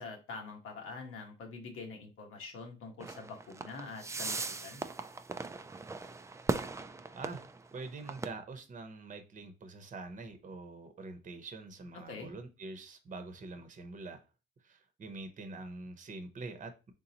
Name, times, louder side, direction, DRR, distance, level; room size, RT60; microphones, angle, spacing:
voice 1, 0.0-4.8 11.9-12.3, left 4 dB, 90° left, 2 dB, 1.3 m, -45 dB
sound 1, 3.0-8.3, right 3 dB, 15° right, 0.3 m, -38 dB
voice 2, 7.1-7.5 7.7-14.2 14.6-16.9, right 3 dB, 35° right, 8 dB, 0.8 m, -45 dB
4.0 x 3.7 x 2.8 m, 0.30 s
cardioid pair, 115°, 21 cm